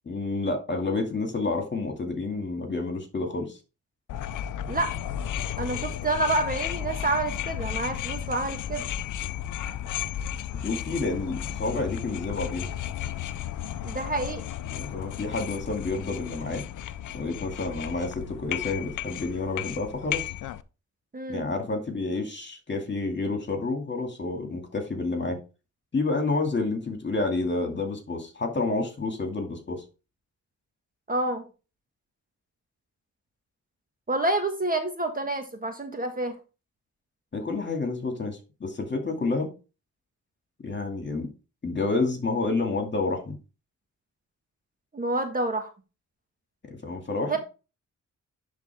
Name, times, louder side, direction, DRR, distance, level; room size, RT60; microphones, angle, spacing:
voice 1, 0.1-3.6 10.6-12.7 14.7-16.6 17.1-20.3 21.3-25.4 25.9-29.8 37.3-39.5 40.6-41.3 41.6-43.4 46.7-47.4, left 3 dB, 35° left, 4 dB, 2.3 m, -29 dB
sound 1, 4.1-20.6, left 10 dB, 75° left, 0.5 m, -34 dB
voice 2, 5.6-8.8 13.8-14.4 21.1-21.4 31.1-31.4 34.1-36.4 44.9-45.7 47.3-47.4, right 2 dB, 25° right, 5 dB, 1.5 m, -28 dB
10.5 x 3.8 x 3.5 m, 0.31 s
cardioid pair, 65°, 31 cm